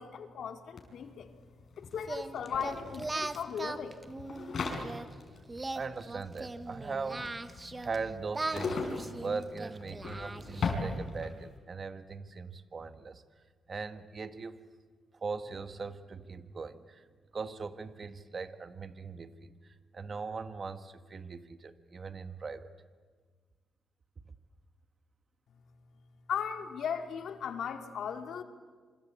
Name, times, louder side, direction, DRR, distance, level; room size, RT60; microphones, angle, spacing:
voice 1, 0.0-1.3 1.8-4.0 26.3-28.4, left 7 dB, 70° left, 6 dB, 2.4 m, -37 dB
sound 1, 0.8-0.9 1.1-11.5, left 4 dB, 50° left, 5.6 m, -39 dB
Singing, 2.0-5.1 5.5-8.0 8.3-10.9, right 2 dB, 20° right, 1.2 m, -39 dB
voice 2, 5.7-7.3 7.8-13.2 13.7-14.6 15.1-17.1 17.3-22.7, right 4 dB, 40° right, 10 dB, 1.5 m, -40 dB
26.5 x 25.0 x 8.5 m, 1.5 s
cardioid pair, 100°, 0 cm